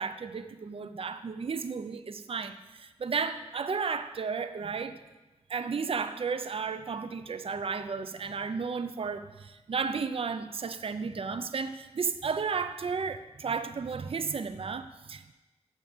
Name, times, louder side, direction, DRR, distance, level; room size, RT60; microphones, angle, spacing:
voice 1, 0.0-5.0 5.5-15.3, right 5 dB, 55° right, 0.5 m, -33 dB
7.3 x 6.2 x 7.8 m
cardioid pair, 50°, 12 cm